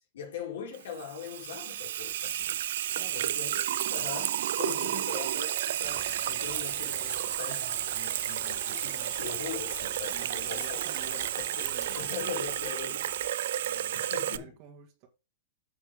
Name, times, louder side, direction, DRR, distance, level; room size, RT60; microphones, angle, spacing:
voice 1, 0.0-2.7 3.1-10.8 11.1-13.0 13.7-14.5, left 7 dB, 80° left, 4.0 m, -41 dB
Water tap faucet / Sink (filling or washing), 0.7-14.4, right 12 dB, 70° right, 0.5 m, -32 dB
voice 2, 2.9-3.3 10.1-13.1 13.6-15.1, right 8 dB, 45° right, 1.9 m, -50 dB
sound 1, 5.8-12.1, left 6 dB, 15° left, 0.5 m, -51 dB
sound 2, 6.4-13.3, right 5 dB, 15° right, 2.4 m, -52 dB
9.0 x 6.4 x 3.7 m
hypercardioid pair, 135°, 0 cm